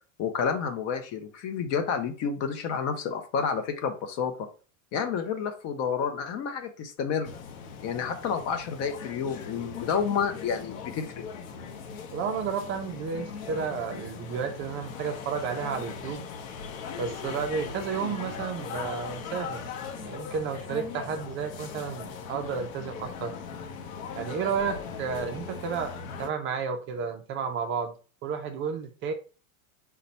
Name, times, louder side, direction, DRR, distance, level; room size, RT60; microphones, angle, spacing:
voice 1, 0.2-4.5 4.9-7.3 7.8-11.2, left 6 dB, 40° left, 0.6 m, -30 dB
sound 1, 7.2-26.3, left 6 dB, 80° left, 0.7 m, -39 dB
voice 2, 12.1-16.3 17.0-19.7 20.0-23.3 24.2-27.9 28.2-29.1, right 6 dB, 30° right, 0.4 m, -32 dB
4.2 x 2.2 x 4.0 m
supercardioid pair, 130°, 41 cm